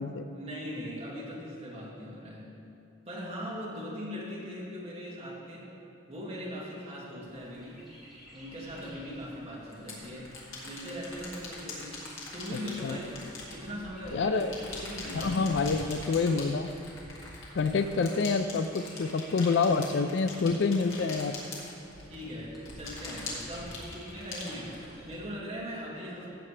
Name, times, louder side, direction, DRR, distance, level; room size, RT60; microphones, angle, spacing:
voice 1, 0.3-2.5 3.1-5.7 6.1-7.8 8.3-10.3 10.6-12.0 12.3-14.3 14.7-15.3 22.0-24.8 25.0-26.4, equal, 30° right, -6 dB, 2.1 m, -40 dB
Chirp tweet, 7.2-25.2, equal, ahead, 2.5 m, -51 dB
sound 1, 8.8-8.9 9.7-14.1 14.4-22.2 22.7-25.1, left 3 dB, 85° left, 2.0 m, -42 dB
voice 2, 14.1-14.5 15.1-16.7 17.5-21.3, left 4 dB, 60° left, 9 dB, 0.4 m, -27 dB
16.0 x 6.8 x 3.3 m, 2.7 s
head